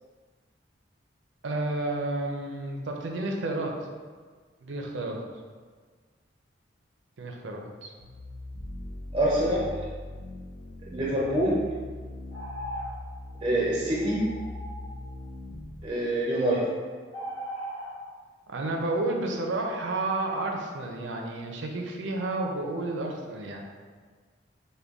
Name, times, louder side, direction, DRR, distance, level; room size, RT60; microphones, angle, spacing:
voice 1, 1.4-3.7 4.6-5.2 7.2-7.9 18.5-23.6, right 2 dB, 85° right, 1 dB, 0.5 m, -31 dB
sound 1, 8.0-15.9, left 1 dB, 50° left, 0.7 m, -41 dB
voice 2, 9.1-9.7 10.9-11.5 13.4-14.2 15.8-16.7, right 1 dB, 30° right, -5 dB, 0.5 m, -25 dB
sound 2, 12.3-13.0 13.3-13.5 14.0-15.0 16.5-16.6 17.1-18.0, right 1 dB, 75° left, 1.3 m, -38 dB
5.1 x 2.2 x 3.4 m, 1.5 s
head